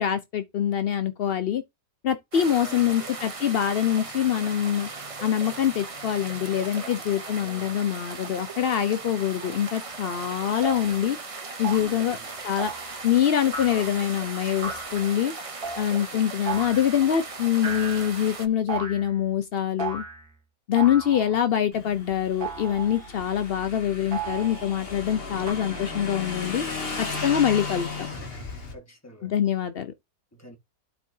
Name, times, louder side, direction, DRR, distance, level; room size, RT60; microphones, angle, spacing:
voice 1, 0.0-1.6 2.0-4.9 5.2-11.2 11.6-12.2 12.4-12.7 13.0-15.3 15.8-20.0 20.7-26.6 27.0-28.1 29.2-29.9, left 9 dB, 70° left, 0.5 m, -24 dB
sound 1, 2.3-18.5, right 4 dB, 40° right, 0.5 m, -38 dB
voice 2, 2.4-3.1 6.4-7.9 11.7-12.4 16.0-16.3 28.7-29.3 30.3-30.6, equal, 10° left, 1.5 m, -47 dB
sound 2, 9.9-10.0 10.6-10.9 11.6-12.0 12.6-13.0 13.5-14.0 14.6-15.0 15.6-15.9 16.5-17.0 17.6-18.3 18.7-19.2 19.8-20.3 20.8-21.5 22.4-23.1 24.1-24.8 25.5-25.6, right 5 dB, 60° right, 2.3 m, -35 dB
Motorcycle / Engine, 21.7-28.7, left 4 dB, 35° left, 1.9 m, -35 dB
12.5 x 4.3 x 2.7 m
omnidirectional pair, 1.8 m